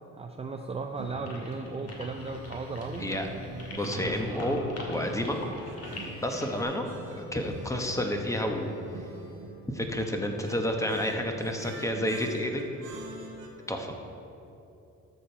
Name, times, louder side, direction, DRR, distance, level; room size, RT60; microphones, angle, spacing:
voice 1, 0.1-3.0 3.7-4.6, right 3 dB, 20° right, 3 dB, 0.5 m, -36 dB
sound 1, 1.0-13.5, right 2 dB, 85° right, 1.3 m, -44 dB
sound 2, 1.3-6.6, left 2 dB, 55° left, 2.3 m, -43 dB
voice 2, 3.7-4.6 4.9-5.4 6.2-6.9 7.1-8.8 9.7-12.6 13.7-14.0, left 1 dB, 10° left, 3 dB, 1.1 m, -30 dB
12.5 x 6.8 x 4.5 m, 2.8 s
cardioid pair, 90°, 30 cm